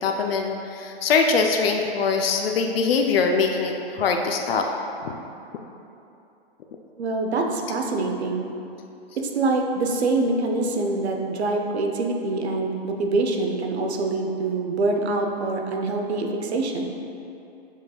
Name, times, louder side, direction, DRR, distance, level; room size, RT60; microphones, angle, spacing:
voice 1, 0.0-4.7 5.0-5.1, left 5 dB, 65° left, 3 dB, 0.5 m, -22 dB
voice 2, 7.0-8.5 9.2-16.9, right 3 dB, 90° right, 2 dB, 0.7 m, -25 dB
7.1 x 2.8 x 2.3 m, 2.8 s
hypercardioid pair, 145°, 32 cm